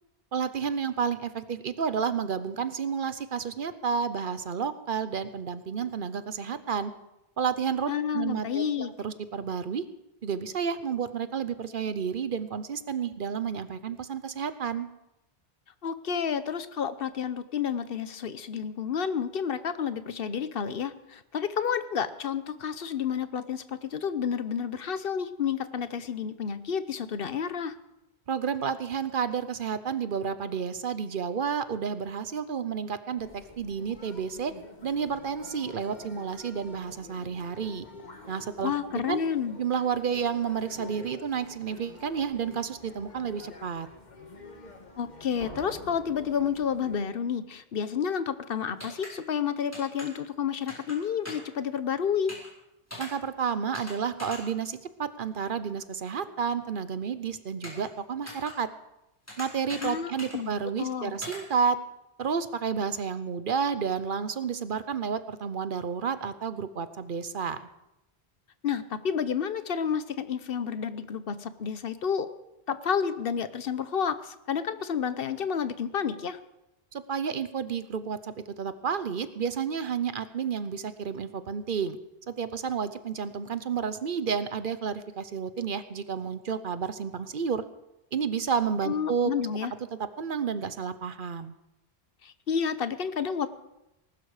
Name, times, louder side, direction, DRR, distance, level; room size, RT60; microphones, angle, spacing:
voice 1, 0.3-6.9 7.4-9.9 10.2-14.9 28.3-34.5 34.8-37.9 38.3-38.7 39.1-39.2 39.6-43.9 53.0-58.7 59.4-61.8 62.2-67.7 76.9-82.0 82.3-87.6 88.1-89.3 90.2-91.5, right 6 dB, 60° right, 12 dB, 0.9 m, -31 dB
voice 2, 7.9-8.9 15.8-27.7 38.6-39.6 45.0-52.3 59.8-60.5 60.8-61.1 68.6-72.3 72.7-76.4 88.8-89.7 92.2-93.5, left 7 dB, 65° left, 13 dB, 1.0 m, -30 dB
sound 1, 33.2-47.0, left 3 dB, 45° left, 1.6 m, -48 dB
sound 2, 45.4-47.2, right 1 dB, 90° right, 3.3 m, -47 dB
sound 3, 48.8-49.1 49.7-50.1 50.7-51.0 51.2-51.5 52.3-52.5 52.9-53.1 53.7-53.9 54.2-54.4 57.6-57.9 58.3-58.5 59.3-59.9 60.2-60.4 61.2-61.4, left 1 dB, 15° left, 4.5 m, -40 dB
19.5 x 12.0 x 4.9 m, 0.90 s
omnidirectional pair, 1.0 m